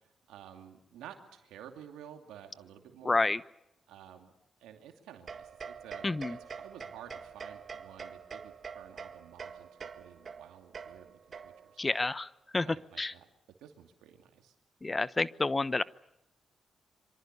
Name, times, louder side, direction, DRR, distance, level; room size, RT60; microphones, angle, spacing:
voice 1, 0.0-3.2 3.9-4.3 4.6-11.8 12.6-13.3 13.6-14.5, right 9 dB, 85° right, 5 dB, 2.6 m, -52 dB
voice 2, 3.0-3.4 6.0-6.4 11.8-12.7 13.0-13.1 14.8-15.8, left 3 dB, 30° left, 17 dB, 0.9 m, -29 dB
sound 1, 5.3-11.8, right 6 dB, 55° right, 1.7 m, -45 dB
26.0 x 25.0 x 6.8 m, 0.85 s
supercardioid pair, 45°, 0 cm